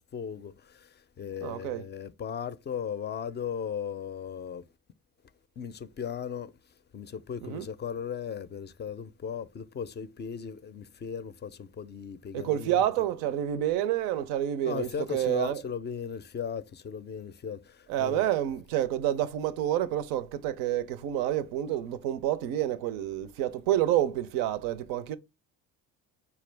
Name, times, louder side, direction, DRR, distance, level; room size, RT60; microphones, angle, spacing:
voice 1, 0.0-4.6 5.6-6.5 6.9-12.8 14.6-18.3, left 7 dB, 30° left, 0.4 m, -37 dB
voice 2, 1.4-1.8 7.4-7.7 12.3-15.6 17.9-25.2, right 12 dB, 85° right, 0.5 m, -28 dB
4.4 x 2.3 x 3.2 m
supercardioid pair, 75°, 35 cm